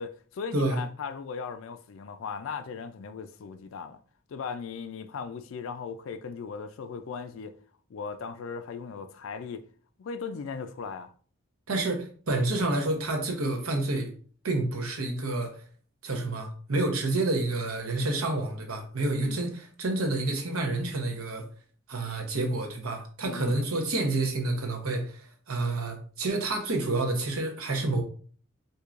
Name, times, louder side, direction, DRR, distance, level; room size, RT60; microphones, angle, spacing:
voice 1, 0.0-4.0 4.3-7.5 7.9-9.6 10.0-11.1 19.1-19.5 20.0-20.1 23.2-23.5, left 5 dB, 70° left, 0.3 m, -38 dB
voice 2, 11.7-14.1 14.4-15.5 16.0-21.4 21.9-25.2 25.5-28.0, right 2 dB, 85° right, 0.9 m, -29 dB
4.5 x 2.7 x 2.4 m
head